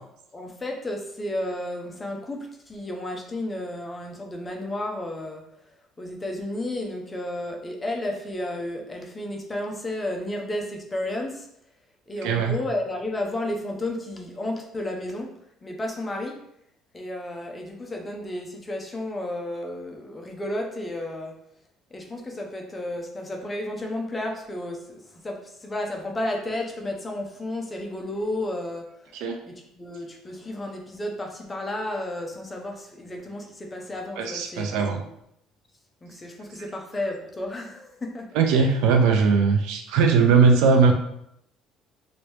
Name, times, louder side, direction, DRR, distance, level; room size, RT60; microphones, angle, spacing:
voice 1, 0.3-5.4 6.0-11.5 12.1-15.3 15.6-16.4 16.9-21.4 21.9-29.1 29.5-35.1 36.0-38.3, left 1 dB, 15° left, 1 dB, 0.5 m, -32 dB
voice 2, 12.2-12.6 29.1-29.4 34.2-35.0 38.3-40.9, right 5 dB, 80° right, 5 dB, 0.4 m, -19 dB
3.0 x 2.6 x 3.1 m, 0.76 s
cardioid pair, 140°, 0 cm